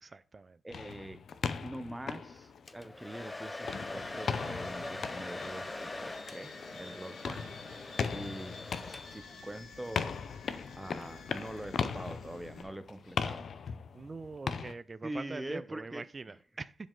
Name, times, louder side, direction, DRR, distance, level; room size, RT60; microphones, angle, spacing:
voice 1, 0.0-0.6 7.3-7.4 13.9-16.8, right 3 dB, 30° right, 15 dB, 0.4 m, -44 dB
voice 2, 0.6-1.2 1.6-7.4 8.1-10.2 10.8-13.5 15.0-16.4, right 1 dB, 10° right, 11 dB, 0.8 m, -44 dB
sound 1, 0.7-3.2 3.6-14.7, left 6 dB, 60° left, 0.7 m, -38 dB
Domestic sounds home sounds, 2.7-9.4, left 2 dB, 20° left, 0.5 m, -43 dB
sound 2, 3.6-12.6, left 4 dB, 85° left, 1.8 m, -50 dB
11.0 x 5.2 x 3.8 m, 0.37 s
cardioid pair, 115°, 0 cm